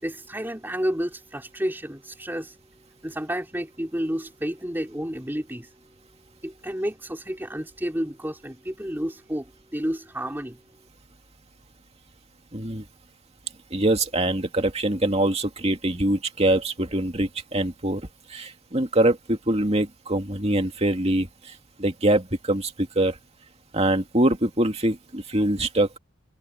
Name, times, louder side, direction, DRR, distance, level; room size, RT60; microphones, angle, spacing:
voice 1, 0.0-2.5 3.0-5.7 6.4-10.6, equal, 10° right, 3.9 m, -30 dB
voice 2, 12.5-12.8 13.7-18.0 18.3-21.3 21.8-23.1 23.7-25.9, right 1 dB, 30° right, 2.4 m, -23 dB
head